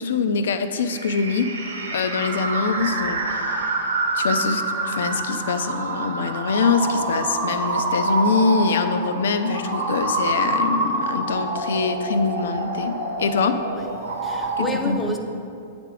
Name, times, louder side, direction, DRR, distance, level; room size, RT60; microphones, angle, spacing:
voice 1, 0.0-1.5 1.9-3.7 4.1-13.6 14.6-15.1, left 5 dB, 60° left, 9 dB, 0.4 m, -24 dB
sound 1, 0.8-14.7, right 2 dB, 75° right, 1.0 m, -26 dB
voice 2, 13.7-15.2, equal, 5° left, 2 dB, 0.6 m, -30 dB
8.8 x 3.4 x 6.2 m, 2.5 s
figure-of-eight pair, 100°, 0 cm